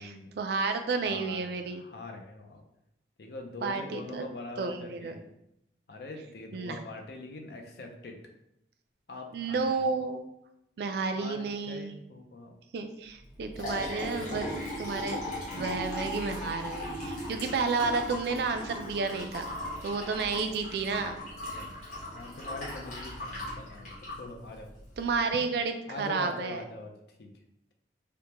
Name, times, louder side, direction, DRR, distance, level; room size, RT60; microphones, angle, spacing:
voice 1, 0.0-1.8 3.6-4.3 4.6-5.1 6.5-6.8 9.3-10.2 10.8-11.9 12.7-14.5 14.8-21.2 25.0-26.6, right 4 dB, 65° right, 7 dB, 0.3 m, -31 dB
voice 2, 1.0-2.6 3.2-5.3 5.9-8.2 9.1-9.9 11.2-12.5 21.5-21.7 22.1-24.7 25.9-26.9 27.2-27.3, left 2 dB, 60° left, 3 dB, 0.5 m, -43 dB
Liquid, 13.2-25.1, left 1 dB, 45° left, 1.1 m, -38 dB
3.4 x 2.1 x 2.9 m, 0.80 s
head